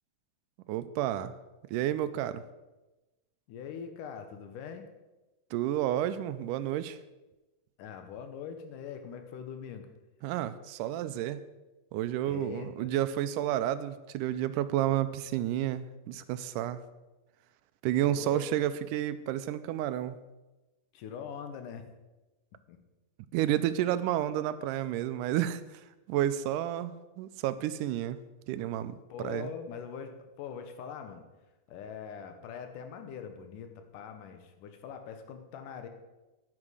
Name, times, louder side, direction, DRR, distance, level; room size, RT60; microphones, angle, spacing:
voice 1, 0.7-1.4 1.7-2.4 5.5-7.0 10.2-11.4 11.9-16.8 17.8-20.2 23.3-28.2 28.5-29.5, right 12 dB, 85° right, 13 dB, 2.1 m, -31 dB
voice 2, 3.5-4.9 7.8-9.9 12.2-12.9 18.1-18.5 20.9-21.9 22.7-22.8 29.1-31.3 31.7-35.9, left 7 dB, 85° left, 7 dB, 2.6 m, -42 dB
10.0 x 9.9 x 5.0 m, 1.1 s
omnidirectional pair, 3.6 m